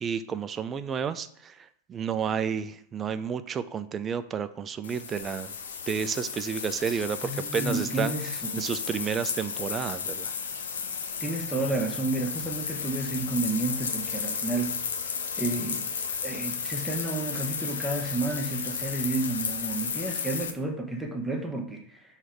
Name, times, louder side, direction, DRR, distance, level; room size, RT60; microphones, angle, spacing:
voice 1, 0.0-5.5 5.9-10.3, right 7 dB, 25° right, 0.4 m, -31 dB
sound 1, 4.8-20.5, left 6 dB, 65° left, 0.7 m, -33 dB
voice 2, 6.9-8.6 11.2-14.7 15.4-15.9 16.2-22.0, right 2 dB, 5° right, 1.0 m, -31 dB
6.2 x 3.2 x 5.9 m
figure-of-eight pair, 90°, 0 cm